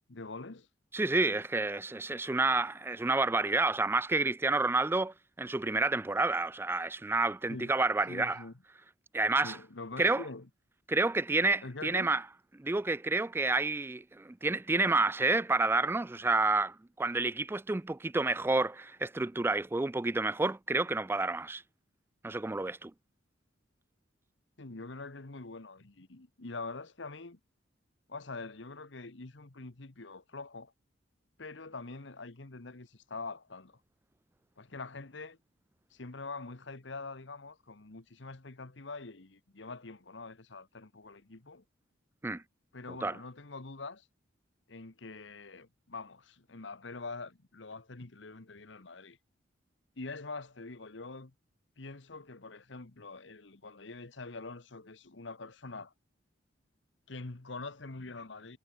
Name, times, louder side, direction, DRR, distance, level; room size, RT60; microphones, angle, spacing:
voice 1, 0.1-0.7 7.5-7.8 8.1-8.5 9.4-10.5 11.6-12.1 24.6-27.4 28.1-30.7 31.4-33.8 34.6-35.4 35.9-41.6 42.7-44.1 44.7-49.2 50.0-51.3 51.8-55.9 57.1-58.6, left 3 dB, 70° left, 1.3 m, -44 dB
voice 2, 0.9-8.4 9.1-9.6 10.0-10.2 10.9-12.2 12.6-21.6 22.2-22.9 42.2-42.4 43.0-43.1, right 3 dB, 10° right, 0.3 m, -29 dB
head